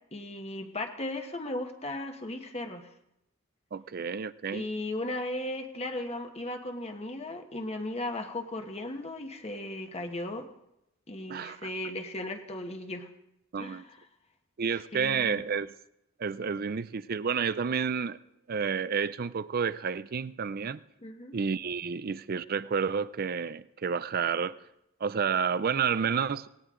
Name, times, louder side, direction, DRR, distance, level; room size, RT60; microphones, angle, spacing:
voice 1, 0.1-2.9 4.5-10.5 11.1-13.1 13.6-14.0 14.9-15.4 21.0-21.3, left 1 dB, 30° left, 5 dB, 1.4 m, -36 dB
voice 2, 3.7-4.6 11.3-11.7 13.5-13.8 14.6-15.8 16.2-18.2 18.5-20.8 21.3-24.5 25.0-26.5, right 6 dB, 50° right, 16 dB, 0.5 m, -30 dB
18.5 x 18.0 x 3.8 m, 0.84 s
head